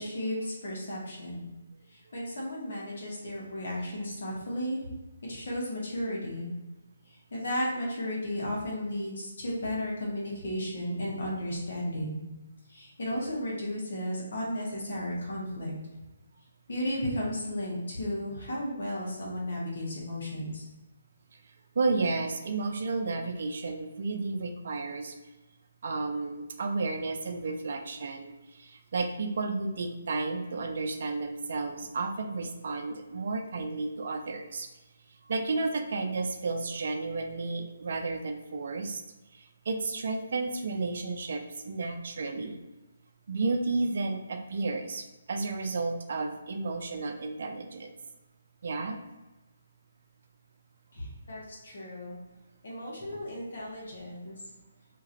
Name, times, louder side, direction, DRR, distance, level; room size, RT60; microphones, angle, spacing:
voice 1, 0.0-1.5 1.9-4.9 5.2-6.5 7.3-12.2 12.7-15.7 16.7-20.6 50.9-52.2 52.6-54.4, left 1 dB, 65° left, -4 dB, 1.4 m, -34 dB
voice 2, 21.8-25.1 25.8-34.7 35.3-39.0 39.3-42.6 43.3-47.9 48.6-49.0, right 3 dB, 60° right, 5 dB, 0.5 m, -32 dB
2.9 x 2.4 x 2.9 m, 1.1 s
hypercardioid pair, 150°, 0 cm